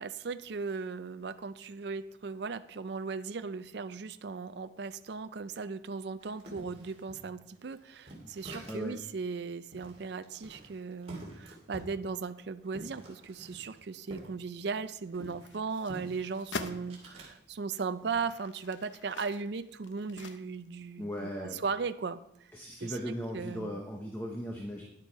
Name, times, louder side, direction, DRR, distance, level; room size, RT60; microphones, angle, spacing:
voice 1, 0.0-22.5 22.8-23.0 23.3-23.8, right 5 dB, 60° right, 11 dB, 0.4 m, -37 dB
sound 1, 6.2-9.0 9.3-9.4 9.7-14.3 14.6-17.4 17.8-18.2, right 1 dB, 30° right, 2.3 m, -48 dB
voice 2, 8.7-9.0 21.0-21.6 22.5-24.8, equal, 10° left, 0 dB, 0.9 m, -38 dB
sound 2, 15.3-16.8 17.5-17.6 18.1-20.8 21.1-21.2, left 4 dB, 75° left, 0.7 m, -44 dB
10.5 x 6.8 x 4.6 m, 0.78 s
head